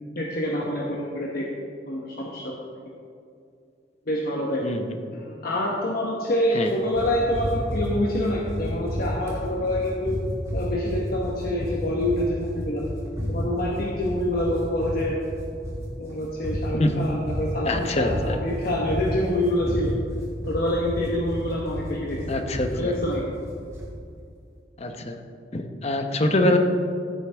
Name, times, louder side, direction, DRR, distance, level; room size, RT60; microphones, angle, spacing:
voice 1, 0.2-1.5 1.9-2.6 4.1-4.7 5.1-10.2 10.5-12.8 13.3-15.2 16.0-19.9 20.5-22.2 22.7-23.3, left 1 dB, 55° left, -3 dB, 1.1 m, -26 dB
voice 2, 4.6-4.9 6.5-6.7 16.7-16.9 17.6-18.4 22.3-22.9 24.8-25.2 25.5-26.6, left 1 dB, 35° left, 5 dB, 0.9 m, -24 dB
sound 1, 6.9-23.9, equal, 15° right, 2.9 m, -31 dB
15.0 x 8.1 x 3.5 m, 2.4 s
head